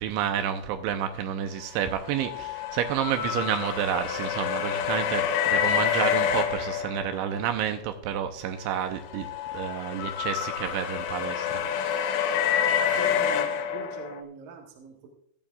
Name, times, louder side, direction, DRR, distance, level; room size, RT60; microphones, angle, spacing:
voice 1, 0.0-9.3 9.5-12.4, right 9 dB, 85° right, 7 dB, 3.0 m, -30 dB
sound 1, 1.9-7.5 8.9-14.2, left 8 dB, 80° left, 3.0 m, -28 dB
voice 2, 13.0-15.1, right 5 dB, 60° right, 0 dB, 2.8 m, -43 dB
16.0 x 11.5 x 2.4 m, 0.69 s
omnidirectional pair, 5.4 m